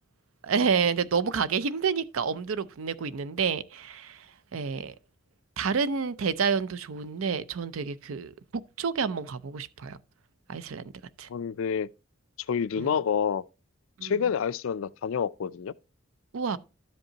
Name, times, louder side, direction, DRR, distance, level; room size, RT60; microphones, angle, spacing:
voice 1, 0.4-4.3 4.5-4.9 5.6-8.3 8.8-10.0 10.5-10.9 11.2-11.3 12.8-12.9 14.0-14.1 16.3-16.6, right 5 dB, 85° right, 0.5 m, -29 dB
voice 2, 11.3-11.9 12.5-13.4 14.0-15.7, left 7 dB, 75° left, 0.4 m, -28 dB
12.0 x 5.3 x 2.8 m
head